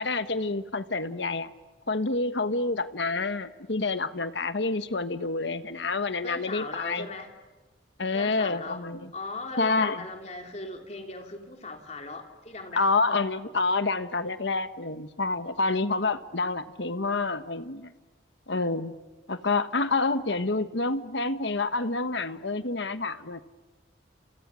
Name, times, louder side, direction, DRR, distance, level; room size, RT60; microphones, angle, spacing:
voice 1, 0.0-1.5 1.9-7.1 8.0-9.1 9.6-10.0 12.7-17.9 18.5-18.9 19.3-23.4, left 3 dB, 70° left, 11 dB, 1.2 m, -28 dB
voice 2, 6.2-7.3 8.1-8.8 9.1-12.9, left 3 dB, 35° left, 4 dB, 3.0 m, -39 dB
30.0 x 30.0 x 6.3 m, 1.2 s
head